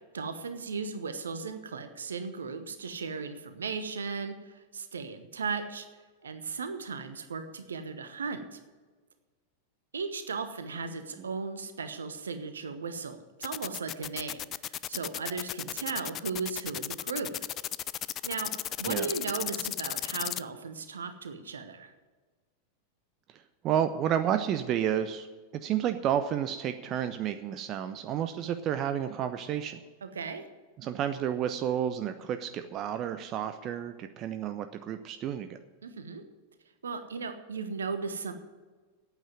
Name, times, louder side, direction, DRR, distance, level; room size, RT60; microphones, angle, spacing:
voice 1, 0.1-5.9 6.2-8.6 9.9-17.3 18.2-18.5 18.8-21.9 30.0-30.4 35.8-36.2 36.8-38.3, right 5 dB, 70° right, 9 dB, 1.1 m, -36 dB
sound 1, 13.4-20.4, left 12 dB, 30° left, 0.3 m, -34 dB
voice 2, 23.6-25.3 25.6-29.8 30.8-35.6, right 10 dB, 35° right, 9 dB, 0.6 m, -31 dB
9.0 x 8.3 x 9.1 m, 1.4 s
figure-of-eight pair, 90°, 0 cm